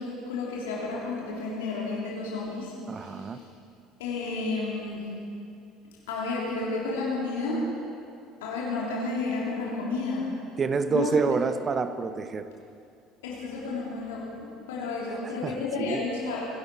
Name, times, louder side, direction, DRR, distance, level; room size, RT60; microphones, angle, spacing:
voice 1, 0.0-3.3 4.0-5.0 6.1-7.7 8.4-10.3 10.9-11.1 13.2-16.5, left 3 dB, 65° left, -5 dB, 3.3 m, -31 dB
voice 2, 2.9-3.4 10.6-12.4 15.4-15.5 15.8-16.0, right 5 dB, 30° right, 10 dB, 1.0 m, -27 dB
25.0 x 12.5 x 4.5 m, 2.5 s
figure-of-eight pair, 60°, 0 cm